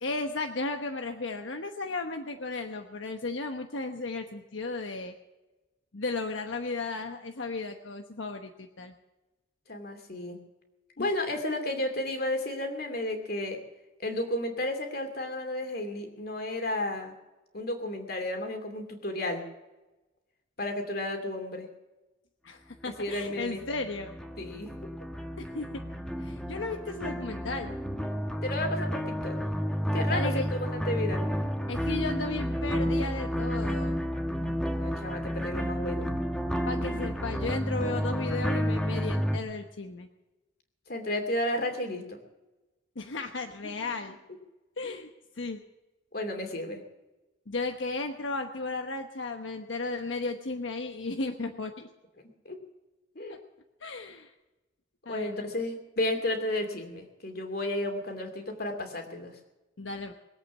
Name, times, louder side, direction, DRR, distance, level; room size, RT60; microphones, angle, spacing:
voice 1, 0.0-5.1 5.9-8.9 11.0-11.1 22.4-24.1 25.4-25.8 26.2-27.8 30.1-30.5 31.7-34.0 36.6-40.1 43.0-44.2 44.8-45.1 45.4-45.6 47.5-51.9 53.3-53.4 53.8-54.3 55.0-55.5 59.8-60.1, left 3 dB, 85° left, 5 dB, 1.1 m, -35 dB
voice 2, 9.7-10.4 11.0-13.6 14.0-17.1 17.5-19.4 20.6-21.7 22.8-23.6 24.4-24.7 28.4-29.4 29.9-31.3 34.8-36.1 40.9-42.2 43.6-44.0 44.8-45.0 46.1-46.8 52.4-52.6 53.1-53.4 55.1-59.4, left 1 dB, 50° left, 5 dB, 2.7 m, -33 dB
sound 1, 23.0-39.4, equal, 5° left, 1.2 m, -31 dB
21.5 x 8.4 x 7.3 m, 1.1 s
head